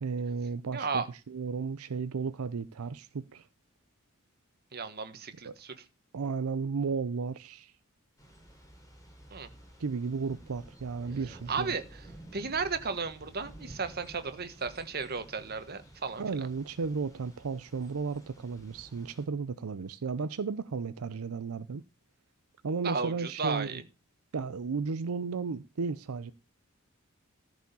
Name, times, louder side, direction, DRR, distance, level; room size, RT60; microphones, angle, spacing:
voice 1, 0.0-3.5 5.4-5.6 6.1-7.7 9.8-11.7 16.2-21.8 22.6-23.8 24.3-26.3, right 5 dB, 80° right, 0.5 m, -34 dB
voice 2, 0.7-1.1 4.7-5.8 9.3-9.5 11.5-12.1 12.3-16.5 22.8-23.8, right 5 dB, 45° right, 1.5 m, -34 dB
Thunder / Rain, 8.2-19.2, right 1 dB, 15° left, 4.0 m, -52 dB
14.0 x 4.9 x 6.9 m
head